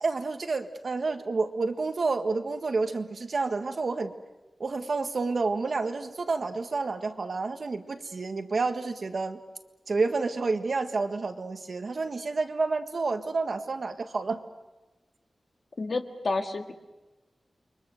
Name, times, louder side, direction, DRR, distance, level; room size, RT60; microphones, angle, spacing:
voice 1, 0.0-4.1 4.6-9.4 9.9-14.4, right 3 dB, 60° right, 7 dB, 1.7 m, -29 dB
voice 2, 15.8-16.7, left 3 dB, 60° left, 5 dB, 1.9 m, -30 dB
29.5 x 23.0 x 6.6 m, 1.1 s
wide cardioid pair, 115°, 0 cm